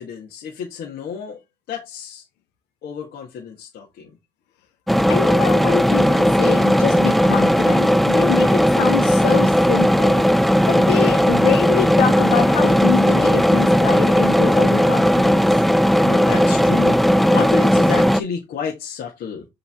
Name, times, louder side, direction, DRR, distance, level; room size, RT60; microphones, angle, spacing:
voice 1, 0.0-1.4 1.7-2.3 2.8-4.2 12.6-12.9 16.0-19.5, left 6 dB, 70° left, 1.8 m, -30 dB
sound 1, 4.9-18.2, equal, ahead, 0.4 m, -16 dB
voice 2, 5.1-10.2 10.6-15.4, left 11 dB, 90° left, 1.2 m, -25 dB
7.3 x 3.8 x 3.7 m
cardioid pair, 110°, 17 cm